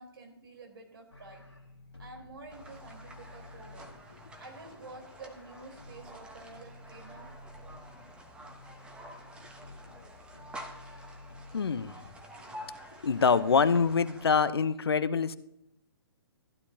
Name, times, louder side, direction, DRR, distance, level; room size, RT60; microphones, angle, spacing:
voice 1, 0.0-1.7 2.0-3.9 4.4-7.3, right 3 dB, 65° right, 1 dB, 3.9 m, -49 dB
sound 1, 1.1-14.3, left 2 dB, 85° left, 2.1 m, -53 dB
sound 2, 2.5-14.2, right 1 dB, 5° right, 1.1 m, -49 dB
voice 2, 11.5-12.0 13.0-15.4, left 5 dB, 70° left, 14 dB, 0.7 m, -25 dB
15.0 x 11.5 x 2.8 m, 0.80 s
figure-of-eight pair, 130°, 13 cm